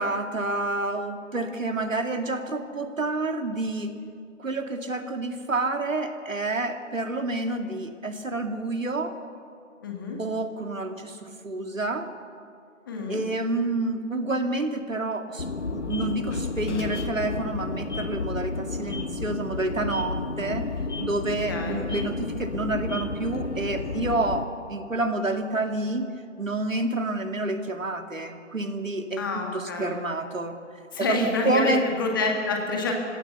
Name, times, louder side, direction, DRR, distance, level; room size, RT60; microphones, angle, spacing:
voice 1, 0.0-3.9 4.4-9.1 10.2-12.1 13.1-20.7 21.0-30.6 31.0-31.2 31.4-31.9, right 2 dB, 90° right, 6 dB, 2.3 m, -29 dB
voice 2, 9.8-10.2 12.9-13.2 21.5-21.8 29.2-29.9 30.9-32.9, left 3 dB, 15° left, 1 dB, 1.7 m, -28 dB
sound 1, 15.4-24.4, left 3 dB, 65° left, 1.5 m, -31 dB
28.5 x 16.0 x 6.9 m, 2.4 s
figure-of-eight pair, 160°, 38 cm